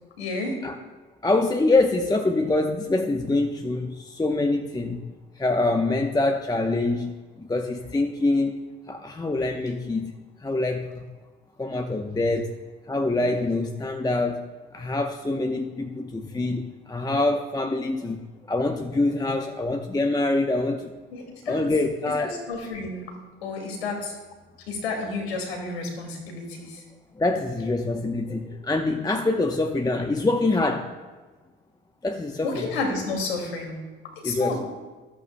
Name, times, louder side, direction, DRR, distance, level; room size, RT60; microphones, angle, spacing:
voice 1, 0.2-0.6 21.1-21.6 22.2-23.1 23.4-24.2 24.7-26.8 32.4-33.8 34.2-34.6, left 3 dB, 90° left, 1 dB, 2.3 m, -31 dB
voice 2, 1.2-5.1 5.4-8.6 8.9-10.1 10.4-11.0 11.6-12.6 12.9-14.4 14.7-18.2 18.5-20.9 21.5-22.3 27.1-30.9 32.0-32.7 34.2-34.6, left 2 dB, 15° left, 3 dB, 0.9 m, -25 dB
14.0 x 12.5 x 2.2 m, 1.3 s
hypercardioid pair, 60°, 30 cm